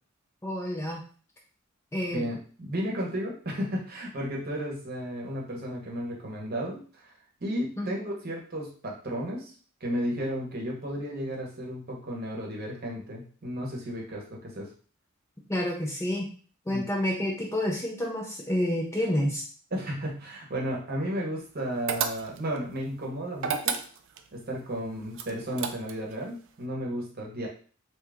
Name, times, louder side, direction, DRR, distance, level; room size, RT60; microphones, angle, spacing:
voice 1, 0.4-1.0 1.9-2.2 7.8-8.1 15.5-16.3 16.7-19.4, left 1 dB, 10° left, -1 dB, 0.4 m, -29 dB
voice 2, 2.1-7.1 7.4-9.5 9.8-14.7 16.7-16.8 19.7-23.8 24.3-27.5, equal, 45° right, -2 dB, 0.9 m, -33 dB
sound 1, 21.9-22.6 23.4-24.3 25.1-26.1, right 7 dB, 60° right, 0.3 m, -31 dB
2.8 x 2.4 x 3.4 m, 0.40 s
head